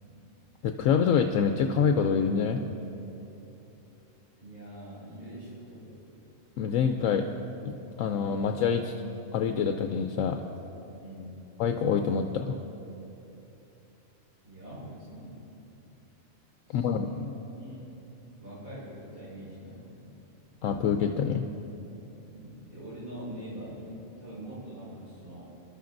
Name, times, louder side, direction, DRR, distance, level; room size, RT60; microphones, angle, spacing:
voice 1, 0.6-2.6 6.6-7.3 7.7-8.9 9.3-10.4 11.6-12.6 16.7-17.1 20.6-21.4, left 6 dB, 75° left, 5 dB, 1.0 m, -26 dB
voice 2, 4.4-6.0 11.0-11.4 14.4-15.4 16.6-17.3 17.6-17.9 18.4-20.1 22.3-25.5, equal, 80° right, -11 dB, 4.5 m, -43 dB
26.0 x 12.0 x 2.6 m, 2.9 s
omnidirectional pair, 1.4 m